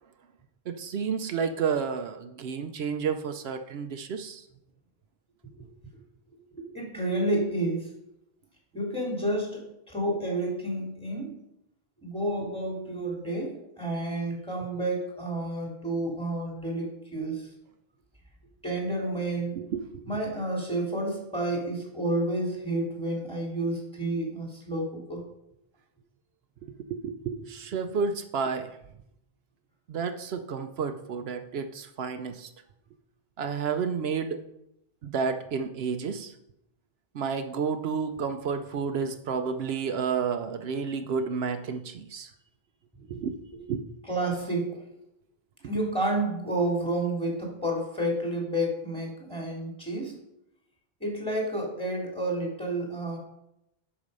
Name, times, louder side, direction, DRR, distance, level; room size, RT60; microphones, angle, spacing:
voice 1, 0.7-4.4 19.6-20.1 26.6-28.8 29.9-32.5 33.4-34.4 35.0-36.3 37.1-42.3 43.1-43.3 43.7-43.8, right 6 dB, 80° right, 8 dB, 0.9 m, -31 dB
voice 2, 6.5-7.9 8.7-11.4 12.0-17.5 18.6-19.6 20.1-25.2 43.1-43.2 43.5-43.6 44.1-44.8 45.6-50.1 51.0-53.2, right 1 dB, 5° left, -2 dB, 2.6 m, -30 dB
8.1 x 6.1 x 5.3 m, 0.82 s
omnidirectional pair, 1.0 m